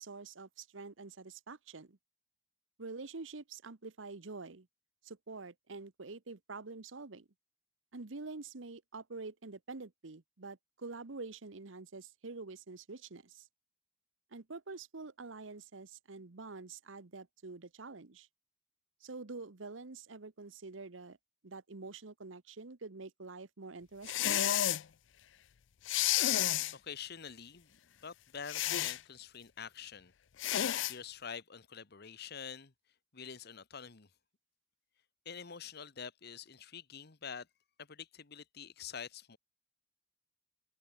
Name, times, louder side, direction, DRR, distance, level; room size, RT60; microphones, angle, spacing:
voice 1, 0.0-2.0 2.8-4.7 5.0-7.3 7.9-13.5 14.3-18.3 19.0-21.2 21.4-24.4, right 3 dB, 85° right, 1.1 m, -47 dB
sound 1, 24.0-24.8 25.9-26.7 28.5-29.0 30.4-30.9, left 12 dB, 75° left, 0.5 m, -30 dB
voice 2, 26.7-30.1 30.9-32.7 33.1-34.1 35.2-37.5 37.8-39.4, left 7 dB, 55° left, 1.2 m, -46 dB
head